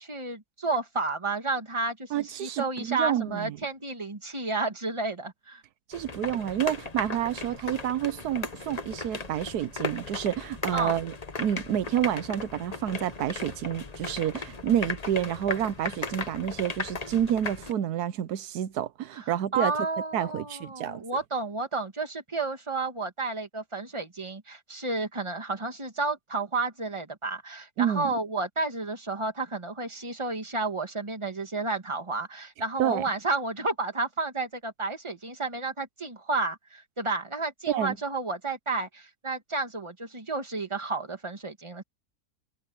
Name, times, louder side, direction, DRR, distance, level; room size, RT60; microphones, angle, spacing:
voice 1, 0.0-5.6 10.7-10.9 19.1-41.8, right 3 dB, 20° right, 1.9 m, -31 dB
voice 2, 2.1-3.6 5.9-11.1 11.4-19.7 20.1-21.0 27.8-28.1 32.8-33.0 37.7-38.0, right 10 dB, 85° right, 1.3 m, -29 dB
sound 1, 5.9-17.7, left 3 dB, 30° left, 1.1 m, -37 dB
omnidirectional pair, 1.6 m